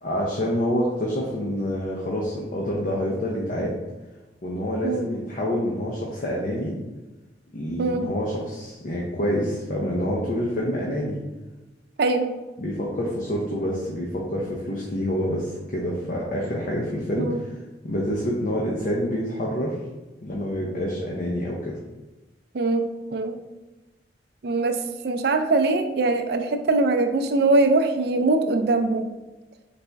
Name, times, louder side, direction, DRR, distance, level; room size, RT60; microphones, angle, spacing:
voice 1, 0.0-3.8 4.4-6.7 7.5-11.2 12.6-17.6 17.8-19.8 20.2-21.8, equal, 50° left, -3 dB, 0.6 m, -27 dB
voice 2, 7.8-8.1 12.0-12.3 17.2-17.4 22.5-23.4 24.4-29.1, right 3 dB, 60° right, 6 dB, 0.4 m, -22 dB
4.1 x 3.4 x 3.4 m, 1.1 s
head